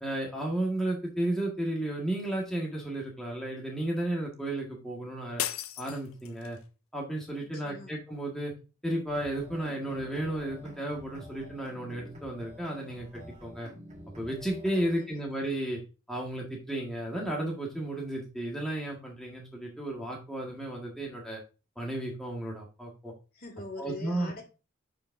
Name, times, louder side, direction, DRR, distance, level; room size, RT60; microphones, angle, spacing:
voice 1, 0.0-5.4 5.8-6.6 6.9-8.5 8.8-13.7 14.2-15.8 16.1-21.4 21.8-23.1 23.8-24.3, right 1 dB, ahead, -3 dB, 1.6 m, -33 dB
sound 1, 5.4-6.6, left 11 dB, 80° left, 0.6 m, -36 dB
voice 2, 7.5-7.9 14.7-15.2 23.3-24.4, left 2 dB, 45° left, 4 dB, 2.3 m, -43 dB
sound 2, 9.1-14.9, equal, 35° right, 1.4 m, -48 dB
10.5 x 5.0 x 2.6 m, 0.31 s
head